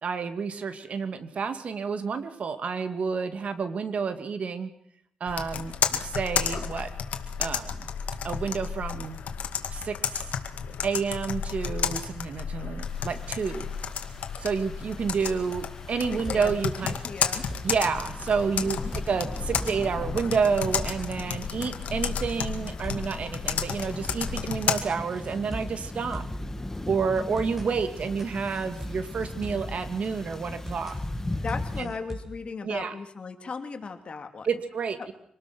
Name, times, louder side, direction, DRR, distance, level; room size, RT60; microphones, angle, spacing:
voice 1, 0.0-4.7 5.2-6.9 7.4-7.9 8.2-9.2 9.7-10.3 10.8-13.7 14.4-17.0 17.6-26.2 26.9-31.0 31.8-31.9 32.6-32.9 34.4-35.1, right 5 dB, 65° right, 10 dB, 2.2 m, -29 dB
Computer keyboard, 5.3-24.8, left 7 dB, 85° left, 2.0 m, -32 dB
sound 1, 12.8-31.8, left 2 dB, 20° left, 1.7 m, -39 dB
sound 2, 16.0-16.6 16.9-17.0 17.3-17.8 18.3-19.9 20.2-20.3 20.6-21.1 21.6-23.2 23.4-23.5 23.9-24.4 24.9-26.5 26.7-26.8 27.2-27.7 28.2-29.8 30.0-30.1 30.4-31.0 31.5-32.4, equal, 15° right, 6.6 m, -40 dB
voice 2, 16.1-16.5 16.8-17.4 18.5-18.9 31.4-34.5, left 4 dB, 50° left, 6 dB, 2.8 m, -37 dB
25.5 x 19.5 x 6.2 m, 0.69 s
cardioid pair, 75°, 2 cm